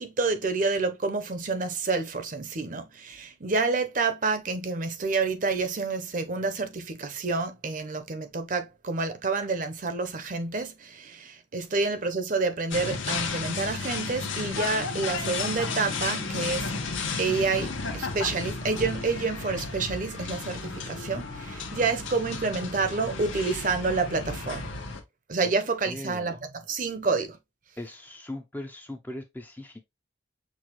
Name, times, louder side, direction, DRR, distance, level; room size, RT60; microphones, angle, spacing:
voice 1, 0.0-16.7 17.2-24.7 25.3-27.4, right 4 dB, 40° right, 0.6 m, -28 dB
sound 1, 12.7-25.0, left 4 dB, 80° left, 1.0 m, -33 dB
voice 2, 25.9-26.3 27.8-29.8, left 1 dB, 10° left, 0.4 m, -39 dB
6.1 x 2.4 x 2.8 m
head